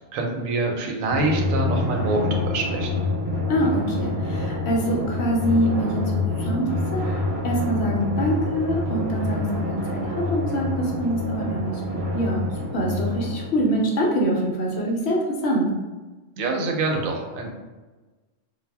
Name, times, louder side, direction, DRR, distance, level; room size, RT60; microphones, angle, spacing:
voice 1, 0.1-2.9 16.4-17.5, right 2 dB, 90° right, 2 dB, 1.0 m, -25 dB
Drum, 1.1-14.2, left 2 dB, 50° right, 0.8 m, -27 dB
voice 2, 3.5-12.4 12.7-15.7, right 1 dB, 65° left, -2 dB, 0.7 m, -25 dB
2.3 x 2.0 x 3.3 m, 1.2 s
omnidirectional pair, 1.3 m